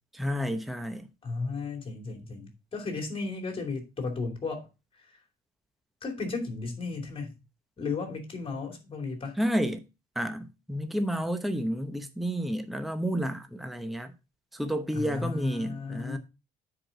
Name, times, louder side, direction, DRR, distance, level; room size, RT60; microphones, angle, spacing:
voice 1, 0.1-1.1 9.4-9.8 10.2-14.1 14.5-16.2, equal, ahead, 0.9 m, -30 dB
voice 2, 1.2-4.7 4.9-5.2 6.0-7.4 7.8-9.4 14.9-16.2, left 4 dB, 35° left, 2.7 m, -35 dB
9.8 x 4.8 x 3.9 m
cardioid pair, 110°, 17 cm